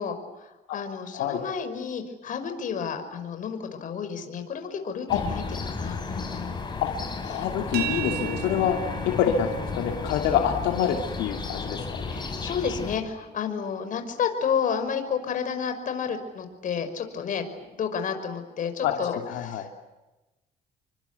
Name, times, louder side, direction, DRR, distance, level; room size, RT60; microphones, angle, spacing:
voice 1, 0.0-5.4 5.7-6.5 12.1-19.7, left 7 dB, 50° left, 8 dB, 5.6 m, -31 dB
sound 1, 5.1-13.0, left 4 dB, 25° left, 6.7 m, -33 dB
voice 2, 7.2-8.8 9.0-12.0 18.8-19.6, left 9 dB, 85° left, 2 dB, 2.9 m, -26 dB
sound 2, 7.7-13.5, right 10 dB, 70° right, 3.9 m, -38 dB
29.0 x 24.5 x 8.4 m, 1.1 s
cardioid pair, 110°, 17 cm